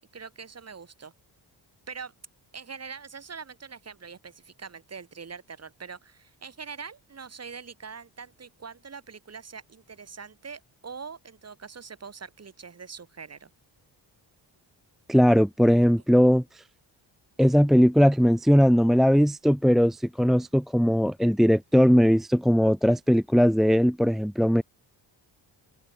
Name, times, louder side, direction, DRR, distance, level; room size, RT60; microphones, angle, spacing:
voice 1, 0.1-1.1 1.9-2.1 2.5-13.5, right 5 dB, 35° right, 6.8 m, -43 dB
voice 2, 15.1-16.6 17.4-24.6, equal, ahead, 0.7 m, -20 dB
open air
wide cardioid pair, 175°, 43 cm